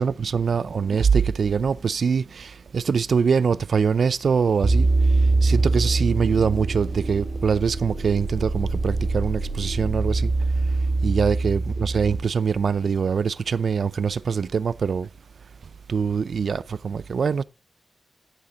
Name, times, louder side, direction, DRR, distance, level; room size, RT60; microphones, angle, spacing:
voice 1, 0.0-15.1 15.9-17.4, right 6 dB, 75° right, 0.5 m, -24 dB
sound 1, 4.6-12.2, right 3 dB, 55° right, 1.9 m, -23 dB
11.5 x 6.6 x 4.0 m
cardioid pair, 65°, 0 cm